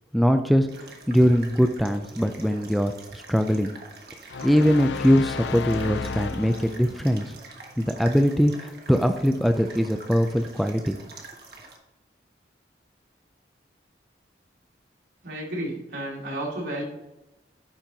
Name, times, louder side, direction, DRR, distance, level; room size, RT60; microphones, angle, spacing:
voice 1, 0.1-3.7 4.4-7.4 7.8-11.0, equal, ahead, 6 dB, 0.3 m, -22 dB
sound 1, 0.7-11.8, right 3 dB, 55° right, 1.3 m, -46 dB
sound 2, 4.3-7.1, left 5 dB, 80° left, 0.4 m, -33 dB
voice 2, 15.2-16.8, right 1 dB, 80° right, -3 dB, 2.8 m, -32 dB
10.0 x 4.4 x 3.9 m, 0.95 s
head